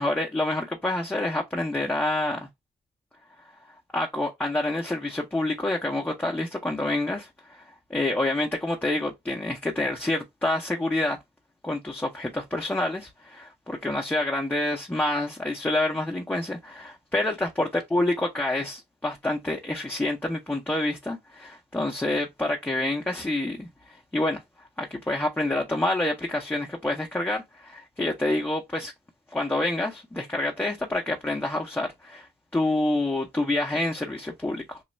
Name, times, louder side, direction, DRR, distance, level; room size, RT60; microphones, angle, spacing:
voice 1, 0.0-2.5 3.9-7.6 7.9-11.2 11.6-28.9 29.3-32.3 32.5-34.8, left 2 dB, 10° left, 0.6 m, -27 dB
3.1 x 2.3 x 4.2 m
cardioid pair, 90°, 17 cm